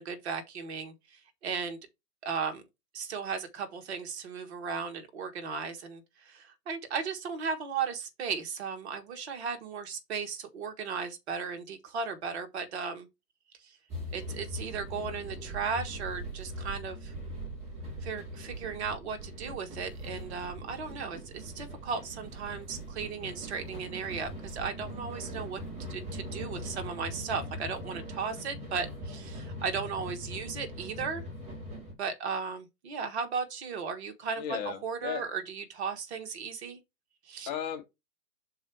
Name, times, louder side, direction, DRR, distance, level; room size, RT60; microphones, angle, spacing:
voice 1, 0.0-1.8 2.2-2.6 2.9-13.1 13.6-13.8 14.1-17.1 18.0-25.6 25.9-31.2 32.0-36.8 37.2-37.5, right 5 dB, 40° right, 1.4 m, -36 dB
sound 1, 13.9-31.9, equal, 15° right, 2.1 m, -41 dB
voice 2, 34.4-35.2 37.5-37.8, left 9 dB, 25° left, 1.2 m, -35 dB
5.5 x 4.3 x 4.6 m
figure-of-eight pair, 125°, 49 cm